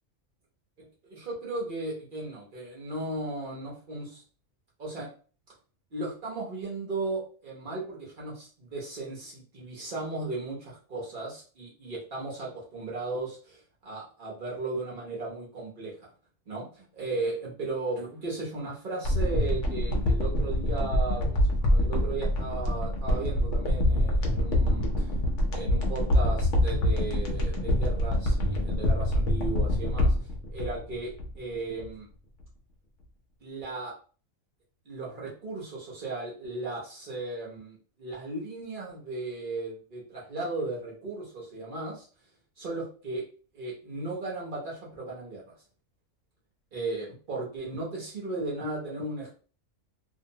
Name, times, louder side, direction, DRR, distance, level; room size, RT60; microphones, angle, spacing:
voice 1, 0.8-4.2 4.8-5.1 5.9-16.0 16.5-25.1 25.5-30.1 30.5-32.1 33.4-33.9 34.9-42.1 42.6-43.2 43.5-45.5 46.7-49.3, right 2 dB, 45° right, -4 dB, 0.8 m, -36 dB
sound 1, 19.0-31.5 31.8-31.9, left 1 dB, 65° left, 0.9 m, -25 dB
2.6 x 2.0 x 2.7 m, 0.39 s
omnidirectional pair, 1.4 m